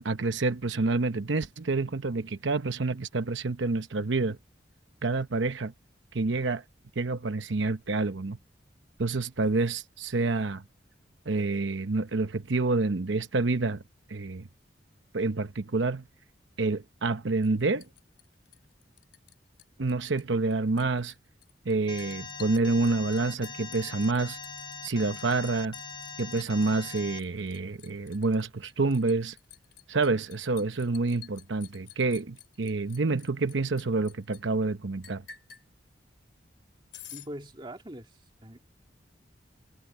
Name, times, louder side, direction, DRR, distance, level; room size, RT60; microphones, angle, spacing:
voice 1, 0.0-4.4 5.0-5.7 6.1-6.6 7.0-8.4 9.0-10.6 11.3-13.8 14.1-14.5 15.1-16.0 16.6-17.9 19.8-21.1 21.6-24.4 24.8-25.8 26.2-29.4 29.9-35.2, right 3 dB, 85° right, 0.9 m, -28 dB
Liquid, 17.4-19.3 19.6-20.2 20.5-34.4 35.0-35.7 36.9-37.3, left 10 dB, 65° left, 3.0 m, -51 dB
Alarm, 21.9-27.2, left 5 dB, 25° left, 0.6 m, -41 dB
voice 2, 37.1-38.6, right 1 dB, 25° right, 2.2 m, -43 dB
head